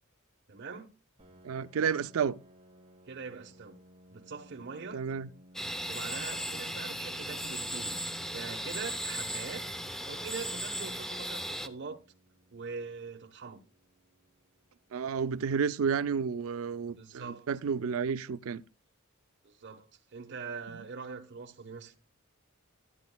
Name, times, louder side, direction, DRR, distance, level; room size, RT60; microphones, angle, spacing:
voice 1, 0.5-0.9 3.1-3.8 4.1-5.0 5.8-8.1 8.3-9.6 10.1-12.0 12.5-13.6 17.0-17.5 19.4-21.9, right 5 dB, 60° right, 1.0 m, -43 dB
Piano, 1.2-16.6, equal, 30° right, 1.2 m, -60 dB
voice 2, 1.4-2.4 4.9-5.3 14.9-18.6, right 6 dB, 75° right, 0.4 m, -31 dB
sound 1, 5.5-11.7, equal, ahead, 0.6 m, -37 dB
14.0 x 9.2 x 2.2 m
head